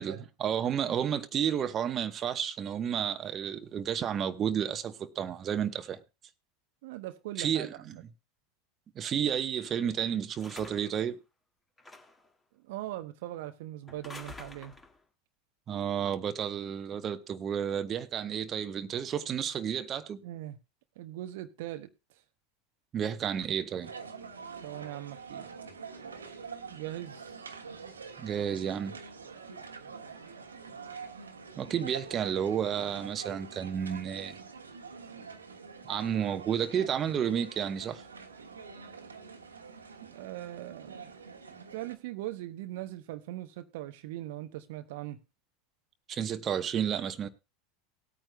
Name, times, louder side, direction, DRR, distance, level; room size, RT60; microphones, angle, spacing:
voice 1, 0.0-6.0 7.4-7.7 8.9-11.2 15.7-20.2 22.9-23.9 28.2-29.0 31.6-34.4 35.9-38.1 46.1-47.3, right 8 dB, 35° right, 1.0 m, -31 dB
voice 2, 6.8-8.0 12.6-14.7 20.2-20.6 21.0-21.9 24.6-25.6 26.7-27.3 40.0-41.1 41.5-45.2, right 15 dB, 60° right, 0.8 m, -40 dB
sound 1, 10.4-11.0 11.8-12.3 13.9-15.0, left 2 dB, 15° left, 2.0 m, -48 dB
sound 2, 23.8-42.0, right 5 dB, 85° right, 1.4 m, -46 dB
19.0 x 9.0 x 2.2 m
figure-of-eight pair, 80°, 0 cm